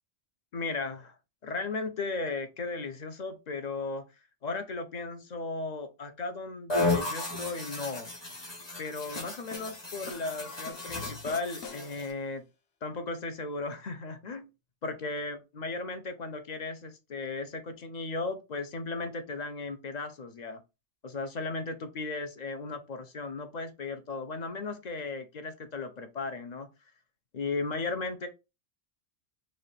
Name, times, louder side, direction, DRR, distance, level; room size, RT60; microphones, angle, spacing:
voice 1, 0.5-1.2 1.4-4.1 4.4-8.1 8.8-12.4 12.8-14.5 14.8-20.6 21.0-26.7 27.3-28.3, left 3 dB, 45° left, 0.7 m, -36 dB
sound 1, 6.7-12.1, left 2 dB, 25° left, 1.1 m, -34 dB
sound 2, 9.0-12.2, left 6 dB, 70° left, 0.9 m, -46 dB
4.2 x 2.5 x 3.2 m
omnidirectional pair, 1.1 m